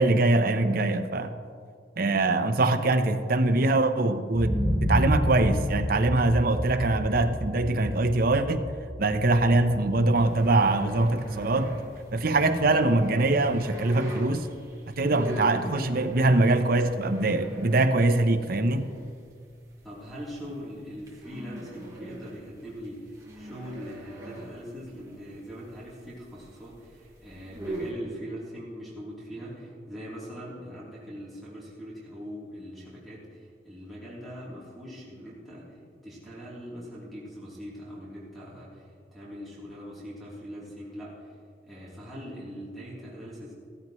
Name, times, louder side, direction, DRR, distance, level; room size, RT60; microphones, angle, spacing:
voice 1, 0.0-1.3 2.0-4.5 4.8-8.7 9.0-11.8 12.1-14.5 14.9-18.9, right 2 dB, 55° right, 8 dB, 0.8 m, -23 dB
sound 1, 4.3-12.2 12.6-12.7, equal, 15° left, 2.5 m, -30 dB
sound 2, 10.1-27.9, right 1 dB, 20° right, 2.4 m, -42 dB
voice 2, 19.8-35.8 36.0-41.3 41.6-43.5, equal, ahead, -8 dB, 3.3 m, -41 dB
15.0 x 15.0 x 3.1 m, 2.1 s
head